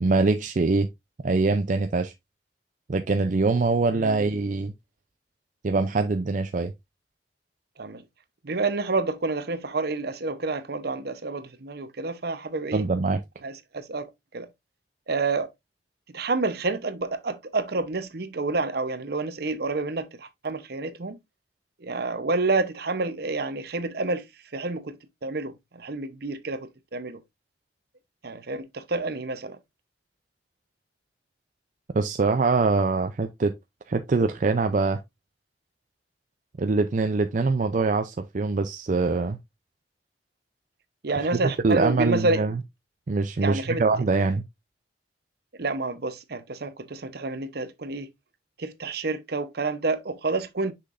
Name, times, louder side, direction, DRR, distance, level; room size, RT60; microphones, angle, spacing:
voice 1, 0.0-0.9 1.2-2.1 2.9-4.7 5.6-6.7 12.7-13.2 31.9-33.5 33.9-35.0 36.6-39.4 41.1-42.6 43.1-44.5, right 3 dB, 45° right, 0.5 m, -23 dB
voice 2, 8.4-12.9 13.4-14.1 14.3-14.5 15.1-15.5 16.1-21.2 21.8-24.2 24.5-25.0 25.2-27.2 28.2-29.6 41.0-42.4 43.4-43.8 45.6-48.1 48.6-50.7, right 3 dB, 65° right, 0.9 m, -29 dB
6.4 x 5.8 x 2.5 m
head